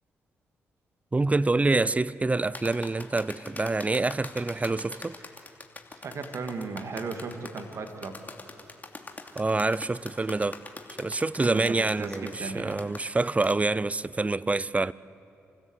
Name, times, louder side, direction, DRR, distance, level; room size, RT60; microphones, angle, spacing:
voice 1, 1.1-5.2 9.4-10.6 11.0-14.9, right 3 dB, 25° right, 0.5 m, -26 dB
sound 1, 2.5-13.6, left 3 dB, 30° left, 2.8 m, -43 dB
voice 2, 6.0-8.2 11.4-12.8, right 4 dB, 60° right, 2.2 m, -36 dB
28.0 x 16.0 x 8.1 m
hypercardioid pair, 45°, 6 cm